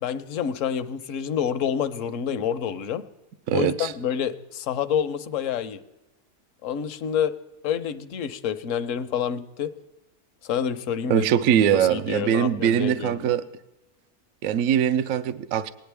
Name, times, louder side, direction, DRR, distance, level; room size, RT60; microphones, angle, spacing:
voice 1, 0.0-3.0 3.5-5.8 6.6-7.3 7.6-9.7 10.4-11.3 11.7-13.3, left 8 dB, 60° left, 11 dB, 1.0 m, -28 dB
voice 2, 3.5-3.9 11.1-13.5 14.4-15.7, right 9 dB, 70° right, 11 dB, 0.9 m, -22 dB
19.0 x 10.5 x 3.4 m, 1.0 s
omnidirectional pair, 1.6 m